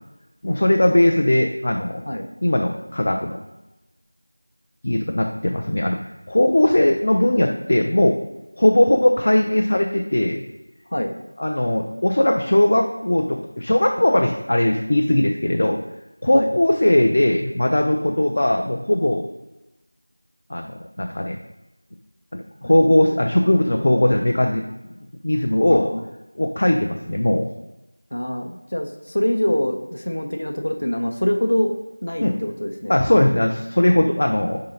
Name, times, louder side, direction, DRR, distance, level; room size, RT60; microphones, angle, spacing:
voice 1, 0.4-2.0 2.4-3.4 4.8-6.0 6.3-8.2 8.6-10.4 11.4-15.8 16.2-19.3 20.5-21.4 22.3-24.6 25.2-25.9 26.4-27.5 32.2-32.3 32.9-34.6, left 1 dB, 30° left, 2 dB, 0.4 m, -19 dB
voice 2, 25.6-26.1 28.1-31.7 32.0-33.0, equal, 50° left, 3 dB, 0.7 m, -24 dB
4.8 x 3.8 x 5.5 m, 1.0 s
figure-of-eight pair, 180°, 0 cm